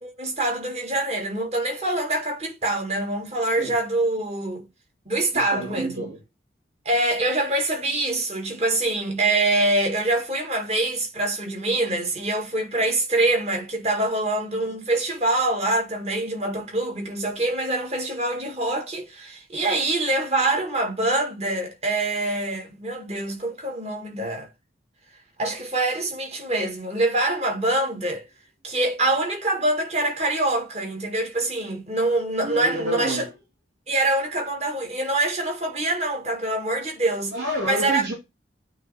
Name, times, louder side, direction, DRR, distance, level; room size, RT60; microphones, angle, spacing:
voice 1, 0.0-4.6 5.1-6.0 6.9-24.5 25.4-28.2 28.6-33.3 33.9-37.3 37.7-38.1, right 2 dB, 35° right, 1.8 m, -25 dB
voice 2, 5.3-6.2 32.4-33.3 37.3-38.1, right 1 dB, 55° right, 2.9 m, -29 dB
8.6 x 3.1 x 4.1 m
head